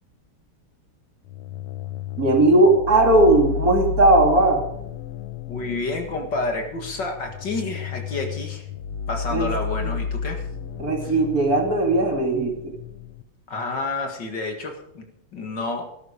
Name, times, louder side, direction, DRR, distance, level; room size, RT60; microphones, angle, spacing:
sound 1, 1.2-13.2, left 6 dB, 90° left, 1.8 m, -32 dB
voice 1, 2.2-4.6 9.3-9.5 10.8-12.7, right 2 dB, 40° right, 2 dB, 2.8 m, -18 dB
voice 2, 5.5-8.7 9.1-10.4 11.0-11.1 13.5-15.1 15.3-15.8, left 2 dB, 55° left, 4 dB, 2.4 m, -29 dB
17.0 x 13.0 x 5.1 m, 0.76 s
omnidirectional pair, 2.4 m